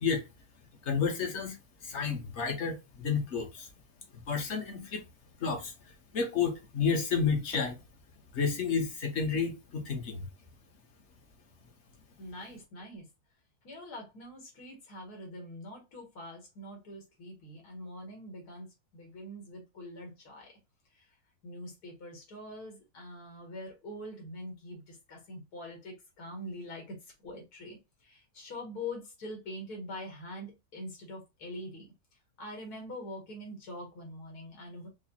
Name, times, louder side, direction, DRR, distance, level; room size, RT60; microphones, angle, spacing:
voice 1, 0.8-1.6 1.8-3.7 4.3-5.0 5.4-5.7 6.1-7.8 8.3-10.3, left 5 dB, 55° left, 1.1 m, -30 dB
voice 2, 12.2-13.1 13.6-20.5 20.9-21.2 21.4-31.9 32.4-34.9, left 1 dB, 85° left, 1.8 m, -44 dB
4.8 x 2.1 x 2.8 m
omnidirectional pair, 1.6 m